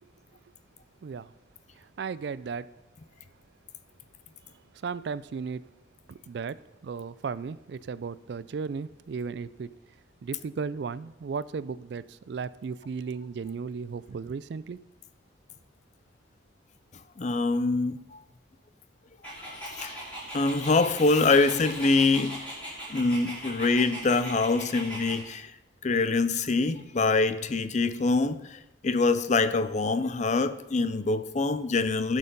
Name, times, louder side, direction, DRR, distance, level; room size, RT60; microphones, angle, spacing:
voice 1, 1.0-1.3 1.8-2.7 4.8-5.6 6.1-9.7 10.2-14.8, right 5 dB, 55° right, 0.3 m, -35 dB
voice 2, 17.2-18.0 19.8-19.9 20.3-22.4 22.9-25.5 25.8-32.2, left 3 dB, 35° left, 0.5 m, -24 dB
Dog, 19.2-25.2, equal, 5° left, 4.2 m, -39 dB
12.5 x 6.5 x 5.4 m
head